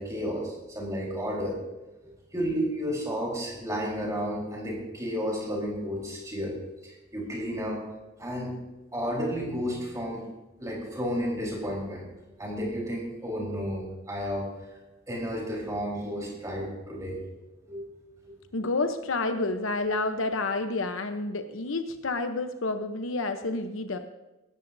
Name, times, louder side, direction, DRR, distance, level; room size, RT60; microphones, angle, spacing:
voice 1, 0.0-1.6 2.3-6.6 6.8-7.8 8.2-8.6 8.9-10.2 10.6-12.1 12.4-14.5 15.1-17.2 17.6-17.8 18.3-18.4, equal, 15° right, -2 dB, 4.1 m, -32 dB
voice 2, 18.5-24.0, left 3 dB, 80° left, 7 dB, 0.9 m, -29 dB
18.0 x 13.5 x 2.7 m, 1.1 s
head